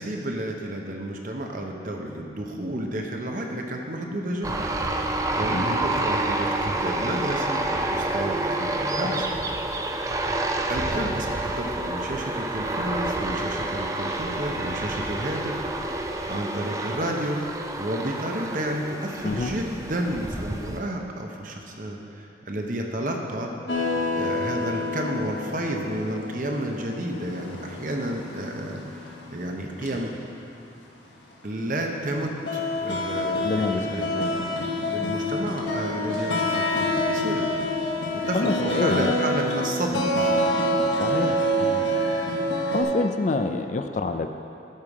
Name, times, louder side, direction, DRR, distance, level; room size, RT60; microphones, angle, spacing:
voice 1, 0.0-4.6 5.3-9.2 10.7-17.4 17.8-23.5 24.1-30.1 31.4-37.5 38.1-40.3, right 1 dB, 45° right, 2 dB, 0.9 m, -31 dB
sound 1, 4.4-20.8, right 2 dB, 20° right, 0.4 m, -28 dB
sound 2, 23.7-30.0 30.6-30.7 31.6-31.8 32.2-42.8, left 1 dB, 90° left, 1.4 m, -27 dB
voice 2, 33.4-34.2 38.3-39.1 41.0-41.9 42.7-44.3, left 3 dB, 40° left, 7 dB, 0.4 m, -27 dB
12.0 x 5.7 x 4.8 m, 2.8 s
head